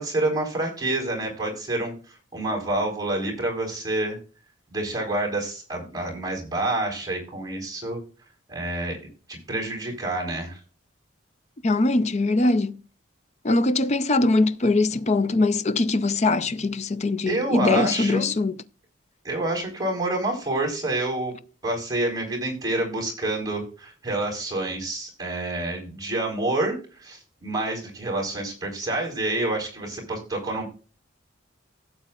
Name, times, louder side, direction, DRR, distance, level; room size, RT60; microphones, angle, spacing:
voice 1, 0.0-4.2 4.7-8.0 8.5-9.0 9.3-10.6 17.3-18.3 19.2-21.3 21.6-30.7, right 2 dB, 20° right, 4.0 m, -28 dB
voice 2, 11.6-12.8 13.4-18.5, left 2 dB, 35° left, 0.5 m, -22 dB
16.5 x 7.7 x 2.4 m
head